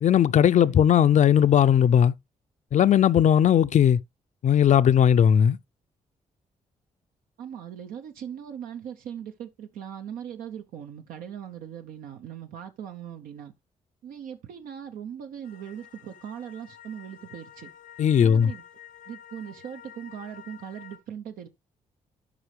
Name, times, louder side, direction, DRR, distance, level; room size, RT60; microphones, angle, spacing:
voice 1, 0.0-2.1 2.7-4.0 4.4-5.6 18.0-18.5, left 9 dB, 60° left, 0.5 m, -18 dB
voice 2, 0.5-1.0 7.4-13.5 14.0-17.7 18.2-18.6 19.1-21.5, right 9 dB, 90° right, 0.8 m, -40 dB
sound 1, 15.4-21.0, left 10 dB, 85° left, 1.1 m, -49 dB
11.5 x 5.1 x 3.3 m
cardioid pair, 65°, 14 cm